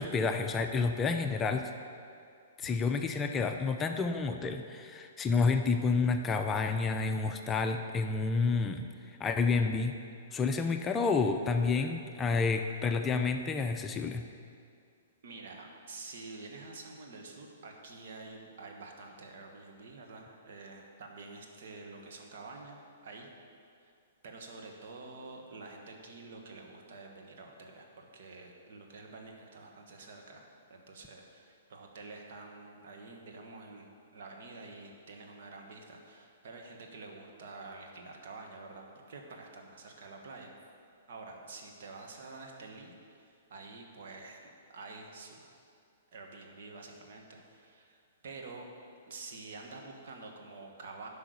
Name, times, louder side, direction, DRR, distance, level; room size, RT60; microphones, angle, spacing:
voice 1, 0.0-1.7 2.6-8.9 9.2-10.0 10.3-14.2, left 4 dB, 20° left, 5 dB, 0.5 m, -29 dB
voice 2, 15.2-23.3 23.8-23.9 24.2-40.5 41.1-45.5 46.1-48.0 48.2-48.7 49.1-51.1, right 3 dB, 60° right, 1 dB, 1.5 m, -48 dB
10.0 x 5.5 x 6.7 m, 2.4 s
figure-of-eight pair, 115°, 0 cm